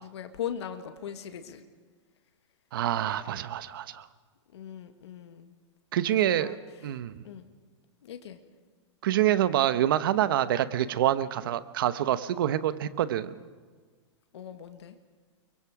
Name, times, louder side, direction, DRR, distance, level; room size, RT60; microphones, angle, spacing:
voice 1, 0.0-1.7 4.5-5.5 6.1-7.0 7.2-7.5 8.0-8.4 14.3-15.0, left 9 dB, 60° left, 7 dB, 1.8 m, -39 dB
voice 2, 2.7-4.1 5.9-6.5 6.8-7.2 9.0-13.3, right 12 dB, 45° right, 13 dB, 1.0 m, -26 dB
29.0 x 23.0 x 4.9 m, 1.5 s
hypercardioid pair, 170°, 16 cm